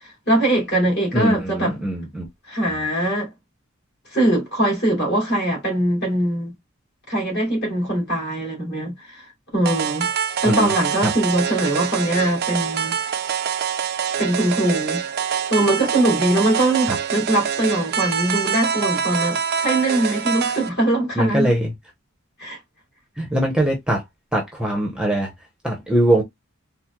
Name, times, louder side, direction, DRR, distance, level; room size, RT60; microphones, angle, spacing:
voice 1, 0.0-1.7 2.5-3.3 4.1-6.5 7.1-9.2 9.5-10.1 10.4-13.0 14.2-15.0 15.5-21.5 22.4-22.6, right 1 dB, 50° left, 2.4 m, -21 dB
voice 2, 1.1-2.3 10.4-10.7 11.0-11.1 16.9-17.0 21.2-21.7 23.2-24.0 24.3-25.3 25.6-26.2, right 1 dB, 5° right, 0.7 m, -21 dB
sound 1, 9.6-20.7, right 7 dB, 50° right, 0.4 m, -25 dB
4.3 x 2.0 x 2.2 m
head